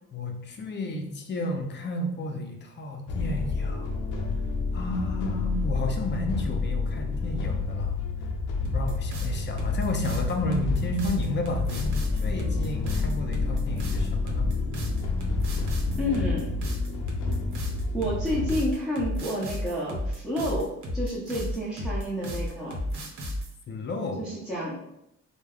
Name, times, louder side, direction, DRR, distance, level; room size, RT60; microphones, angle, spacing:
voice 1, 0.1-3.9 4.7-8.0 8.7-14.5 23.7-24.3, left 1 dB, 35° left, 3 dB, 0.5 m, -32 dB
sound 1, 3.1-18.6, left 4 dB, 90° left, 0.5 m, -29 dB
sound 2, 8.6-23.5, left 1 dB, 75° right, 0.7 m, -32 dB
voice 2, 15.9-16.6 17.9-22.7 24.2-24.8, equal, ahead, -8 dB, 0.6 m, -30 dB
3.3 x 2.0 x 2.3 m, 0.80 s
cardioid pair, 90°, 30 cm